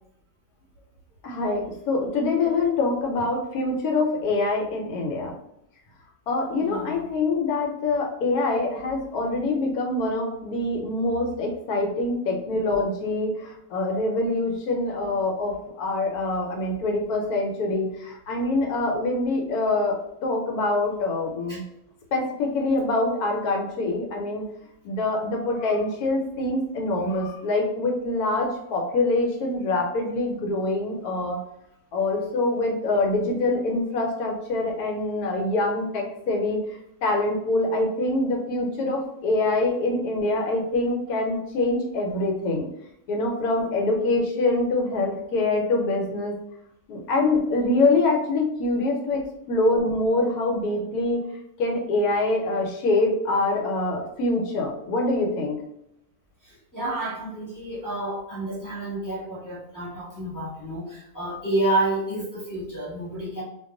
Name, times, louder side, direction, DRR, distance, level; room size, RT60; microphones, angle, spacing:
voice 1, 1.2-5.3 6.3-21.6 22.1-24.4 24.8-31.4 31.9-36.6 37.0-42.7 43.1-46.3 46.9-51.2 51.6-55.6, left 2 dB, 75° left, 1 dB, 1.1 m, -25 dB
voice 2, 6.6-6.9 21.5-21.6 56.4-63.4, right 1 dB, 15° left, -8 dB, 0.9 m, -29 dB
2.5 x 2.3 x 3.6 m, 0.80 s
omnidirectional pair, 1.6 m